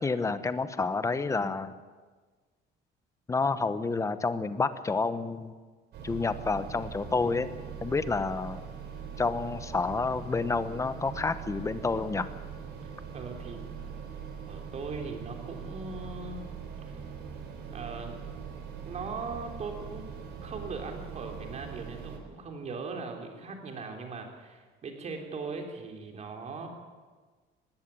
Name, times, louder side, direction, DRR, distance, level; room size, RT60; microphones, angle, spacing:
voice 1, 0.0-1.8 3.3-5.5 6.0-7.5 7.8-8.6 9.2-12.3, left 4 dB, 15° left, 12 dB, 0.9 m, -29 dB
sound 1, 5.9-22.2, right 7 dB, 60° right, 4.4 m, -42 dB
voice 2, 12.8-13.6 14.5-16.4 16.9-17.0 17.7-18.3 18.8-20.1 20.4-26.7, right 4 dB, 35° right, 3 dB, 3.6 m, -39 dB
19.5 x 16.5 x 9.9 m, 1.4 s
cardioid pair, 160°, 19 cm